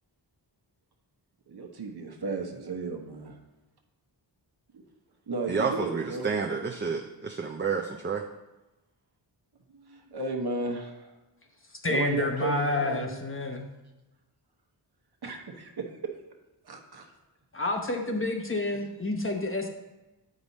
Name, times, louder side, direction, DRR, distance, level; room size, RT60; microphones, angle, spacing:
voice 1, 1.5-3.4 4.7-4.8 5.3-6.3 9.7-11.1 11.9-13.2 15.2-16.1 16.6-17.1 18.7-18.8, right 3 dB, 60° right, 2 dB, 1.2 m, -34 dB
voice 2, 5.5-8.2, right 5 dB, 25° right, 1 dB, 0.5 m, -30 dB
voice 3, 11.8-13.7 17.5-19.7, left 2 dB, 30° left, 3 dB, 1.0 m, -29 dB
8.9 x 5.2 x 4.1 m, 1.0 s
wide cardioid pair, 105°, 44 cm